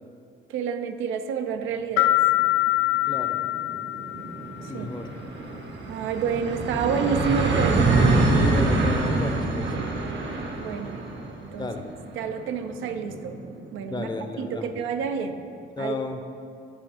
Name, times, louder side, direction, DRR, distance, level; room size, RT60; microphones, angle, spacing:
voice 1, 0.5-2.2 4.6-4.9 5.9-7.9 10.6-11.0 11.4-11.7 12.2-13.4 13.7-14.1 14.4-15.4 15.8-16.0, right 6 dB, 90° right, 7 dB, 0.5 m, -29 dB
sound 1, 2.0-4.6, left 18 dB, 70° left, 0.5 m, -23 dB
sound 2, 2.1-2.2 2.5-2.6 2.9-14.3, right 2 dB, 65° right, 0.9 m, -26 dB
voice 2, 3.1-3.4 4.7-5.1 8.3-9.8 11.6-11.9 13.8-14.7 15.8-16.2, left 3 dB, 20° left, 6 dB, 0.5 m, -32 dB
9.3 x 3.5 x 4.8 m, 2.5 s
cardioid pair, 90°, 20 cm